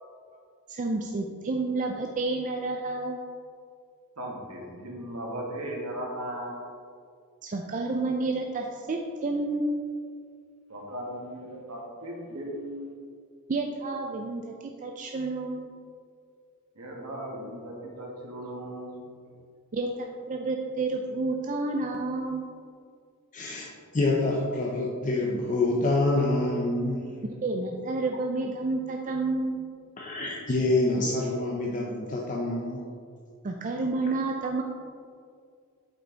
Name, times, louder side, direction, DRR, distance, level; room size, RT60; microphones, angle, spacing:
voice 1, 0.7-3.2 7.4-9.8 13.5-15.7 19.7-22.4 27.4-29.6 33.4-34.6, right 3 dB, 35° right, 2 dB, 0.4 m, -30 dB
voice 2, 4.2-6.6 10.7-12.9 16.8-19.0, right 1 dB, 90° right, -2 dB, 1.7 m, -37 dB
voice 3, 23.3-27.2 30.0-32.9, left 2 dB, 35° left, -2 dB, 0.7 m, -27 dB
7.8 x 5.5 x 4.0 m, 2.2 s
head